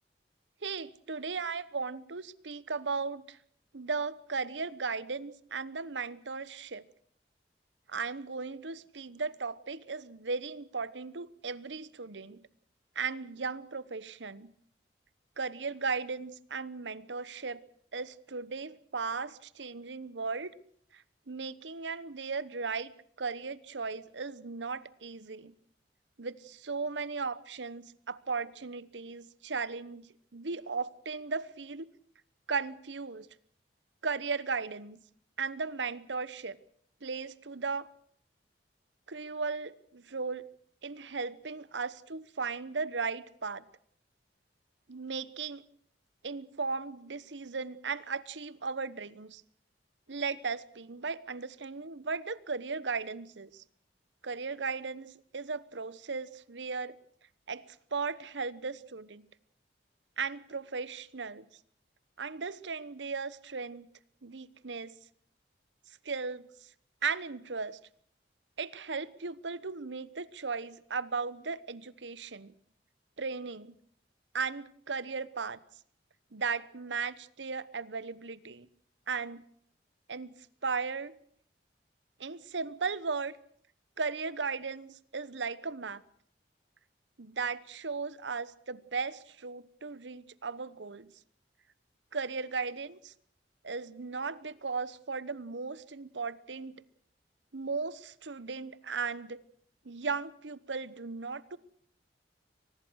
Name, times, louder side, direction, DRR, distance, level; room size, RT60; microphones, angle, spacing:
voice 1, 0.6-3.4 3.7-6.8 7.9-12.4 12.9-14.5 15.4-17.6 17.9-20.5 20.9-22.9 23.2-25.6 26.2-31.9 32.5-33.3 34.0-35.0 35.4-36.6 37.0-37.9 39.1-40.5 40.8-43.6 44.9-45.6 46.2-49.4 50.1-53.6 54.2-57.0 57.5-59.3 60.2-61.4 62.2-63.9 64.2-64.9 66.0-66.5 67.0-67.8 68.6-72.5 73.2-73.7 74.3-75.6 76.3-78.7 79.1-79.4 80.1-80.3 80.6-81.2 82.2-83.4 84.0-86.0 87.2-91.1 92.1-93.1 93.6-96.8 97.5-99.4 99.8-101.6, right 4 dB, 90° right, 18 dB, 1.0 m, -36 dB
24.0 x 19.5 x 6.4 m, 0.62 s
head